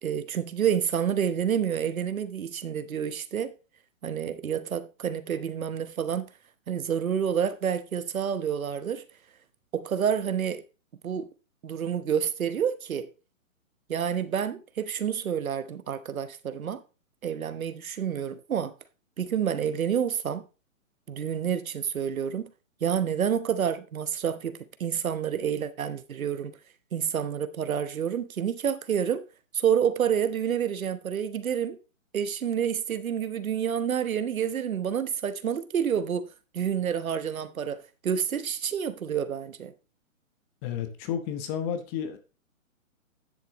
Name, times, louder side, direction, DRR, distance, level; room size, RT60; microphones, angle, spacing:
voice 1, 0.0-3.5 4.0-6.3 6.7-9.0 9.7-10.6 11.0-11.3 11.6-13.1 13.9-16.8 17.2-18.7 19.2-20.4 21.1-22.5 22.8-26.5 26.9-29.2 29.5-31.8 32.1-36.3 36.5-39.7, right 8 dB, 80° right, 1.1 m, -28 dB
voice 2, 40.6-42.2, left 8 dB, 20° left, 0.9 m, -31 dB
10.5 x 7.5 x 3.0 m
hypercardioid pair, 150°, 41 cm